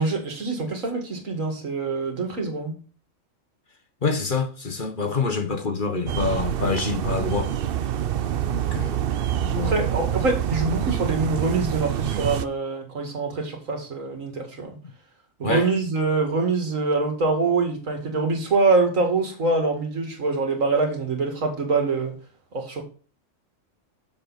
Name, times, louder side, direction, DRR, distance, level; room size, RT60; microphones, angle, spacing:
voice 1, 0.0-2.7 9.5-14.7 15.4-22.1 22.5-22.8, right 3 dB, 80° right, 2.4 m, -24 dB
voice 2, 4.0-7.5 8.5-9.1 9.4-9.8 15.4-15.7, left 4 dB, 40° left, 1.2 m, -26 dB
sound 1, 6.1-12.4, right 10 dB, 60° right, 0.7 m, -26 dB
7.2 x 6.7 x 4.0 m
omnidirectional pair, 1.3 m